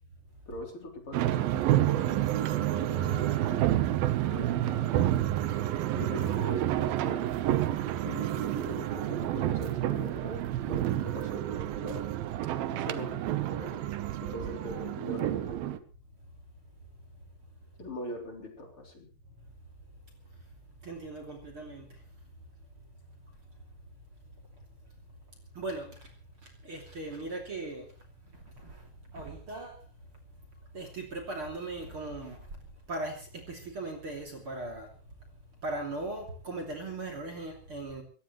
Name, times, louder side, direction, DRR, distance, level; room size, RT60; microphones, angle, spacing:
voice 1, 0.5-3.7 4.2-4.9 5.9-7.3 8.0-10.4 10.7-12.1 12.5-13.9 14.3-15.8 17.8-19.1, left 1 dB, 35° left, 4.1 m, -42 dB
sound 1, 1.1-15.8, right 13 dB, 80° right, 2.8 m, -29 dB
voice 2, 20.8-21.9 25.6-26.1 26.4-27.9 28.5-29.8 30.7-32.4 32.9-34.9 35.6-38.0, right 2 dB, 35° right, 3.4 m, -38 dB
22.5 x 18.0 x 3.2 m
omnidirectional pair, 4.3 m